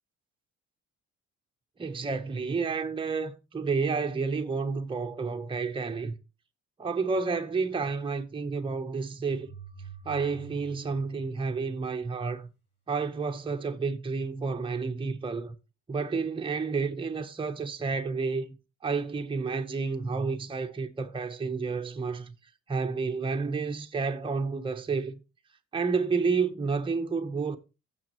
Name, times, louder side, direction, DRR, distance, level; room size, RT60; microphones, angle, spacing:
voice 1, 1.8-6.1 6.8-9.5 10.1-12.5 12.9-15.5 15.9-18.6 18.8-22.3 22.7-25.2 25.7-27.6, right 4 dB, 15° right, 0.8 m, -30 dB
sound 1, 9.3-12.2, right 6 dB, 20° left, 4.1 m, -47 dB
15.0 x 6.2 x 3.0 m
cardioid pair, 90°, 30 cm